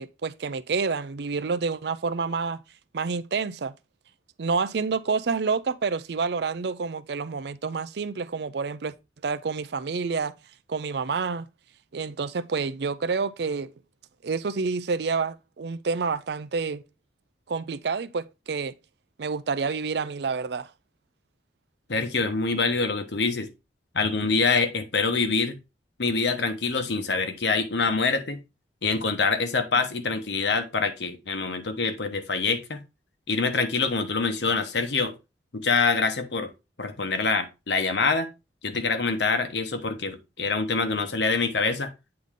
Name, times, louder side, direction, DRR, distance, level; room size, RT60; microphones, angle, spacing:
voice 1, 0.0-2.6 2.9-3.7 4.4-8.9 9.2-10.3 10.7-11.5 11.9-13.7 14.2-16.8 17.5-18.7 19.2-20.7, right 5 dB, 65° right, 0.5 m, -28 dB
voice 2, 21.9-23.5 23.9-25.6 26.0-28.4 28.8-32.8 33.3-35.1 35.5-36.5 36.8-38.3 38.6-41.9, left 4 dB, 70° left, 1.1 m, -25 dB
8.6 x 3.9 x 3.7 m
head